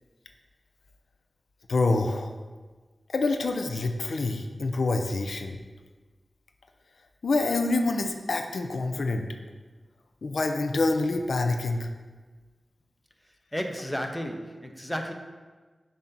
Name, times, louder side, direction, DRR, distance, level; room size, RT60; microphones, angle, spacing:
voice 1, 1.7-2.3 3.1-5.6 7.2-9.2 10.2-11.9, left 3 dB, 80° left, 5 dB, 0.5 m, -26 dB
voice 2, 13.5-15.1, equal, 5° left, 4 dB, 0.7 m, -32 dB
7.2 x 2.7 x 5.8 m, 1.4 s
cardioid pair, 50°, 0 cm